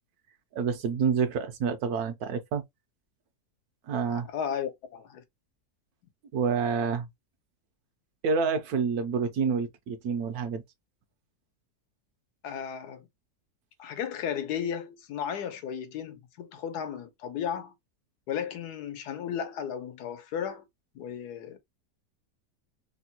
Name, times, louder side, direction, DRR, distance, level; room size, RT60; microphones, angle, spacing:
voice 1, 0.5-2.6 3.9-4.3 6.3-7.1 8.2-10.6, right 6 dB, 75° right, 1.1 m, -28 dB
voice 2, 3.9-5.2 12.4-13.1 13.8-17.7 18.3-20.7 20.9-21.6, left 8 dB, 85° left, 1.3 m, -34 dB
3.3 x 2.2 x 2.7 m
omnidirectional pair, 1.7 m